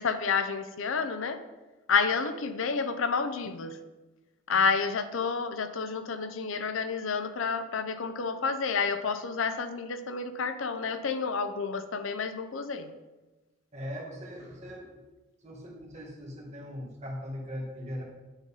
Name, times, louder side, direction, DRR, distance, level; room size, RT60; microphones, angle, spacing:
voice 1, 0.0-1.4 1.9-3.8 4.5-12.9, left 5 dB, 75° left, 10 dB, 0.6 m, -29 dB
voice 2, 13.7-14.9 15.4-18.0, equal, 35° right, -3 dB, 1.8 m, -40 dB
9.0 x 4.0 x 5.4 m, 1.2 s
head